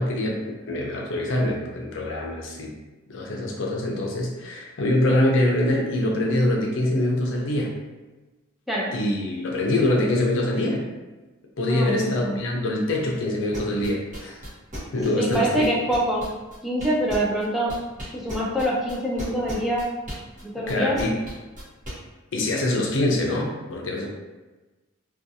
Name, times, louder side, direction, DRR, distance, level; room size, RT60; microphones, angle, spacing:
voice 1, 0.0-2.7 3.1-7.7 8.9-10.9 11.6-14.4 14.9-15.6 20.7-21.2 22.3-24.1, left 1 dB, 65° left, -1 dB, 0.5 m, -24 dB
voice 2, 11.7-12.4 15.2-16.3 16.6-17.8 18.1-19.9 20.4-21.0, equal, ahead, -5 dB, 0.3 m, -25 dB
sound 1, 13.5-17.4 17.7-21.9, equal, 40° right, 0.9 m, -36 dB
2.6 x 2.3 x 2.6 m, 1.2 s
head